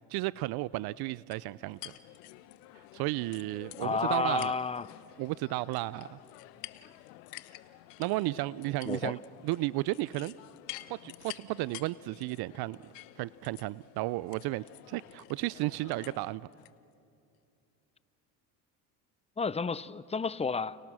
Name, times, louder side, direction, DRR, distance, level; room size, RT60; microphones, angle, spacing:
voice 1, 0.1-1.9 2.9-4.5 5.2-6.2 8.0-9.2 9.4-10.3 10.9-12.8 13.2-16.5, right 19 dB, 55° right, 0.5 m, -33 dB
sound 1, 1.3-16.7, left 16 dB, 80° left, 1.1 m, -50 dB
voice 2, 3.8-4.9 8.8-9.2 19.4-20.8, left 5 dB, 15° left, 0.6 m, -31 dB
30.0 x 30.0 x 6.2 m
hypercardioid pair, 80°, 48 cm